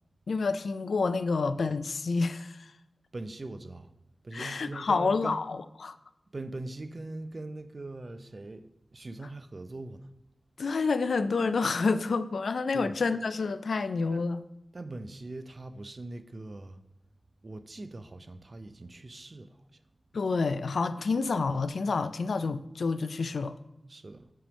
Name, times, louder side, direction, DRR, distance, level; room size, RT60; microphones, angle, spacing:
voice 1, 0.3-2.6 4.3-5.9 10.6-14.4 20.1-23.5, left 4 dB, 85° left, 0.3 m, -28 dB
voice 2, 3.1-3.9 4.2-5.4 6.3-10.1 12.7-12.9 14.1-14.2 14.7-16.8 17.4-19.6 23.9-24.3, right 2 dB, 45° right, 0.5 m, -41 dB
7.6 x 3.4 x 6.1 m
wide cardioid pair, 70°, 0 cm